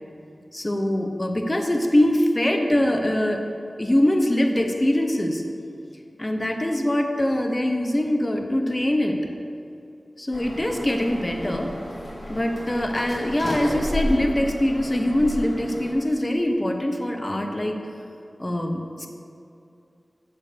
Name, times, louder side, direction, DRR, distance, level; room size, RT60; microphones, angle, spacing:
voice 1, 0.5-3.4 3.8-5.4 6.2-9.2 10.2-11.7 12.3-17.8 18.4-19.1, left 1 dB, 25° left, 4 dB, 0.9 m, -23 dB
sound 1, 10.3-15.9, left 1 dB, 70° left, 2.2 m, -32 dB
11.0 x 4.5 x 7.0 m, 2.5 s
wide cardioid pair, 80°, 0 cm